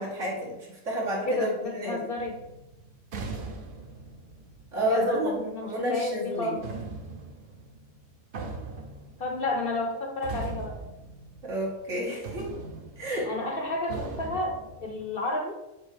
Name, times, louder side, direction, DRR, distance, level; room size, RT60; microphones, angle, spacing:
voice 1, 0.0-2.0 4.7-6.6 11.4-12.5 13.0-13.3, right 1 dB, 70° right, -3 dB, 2.0 m, -30 dB
voice 2, 1.3-2.4 4.8-6.7 9.2-10.8 13.2-15.6, left 2 dB, 50° left, 3 dB, 0.8 m, -31 dB
sound 1, 2.2-5.6 6.6-11.9 12.2-15.1, right 3 dB, 50° right, 0.8 m, -41 dB
7.5 x 2.8 x 4.9 m, 0.97 s
omnidirectional pair, 1.3 m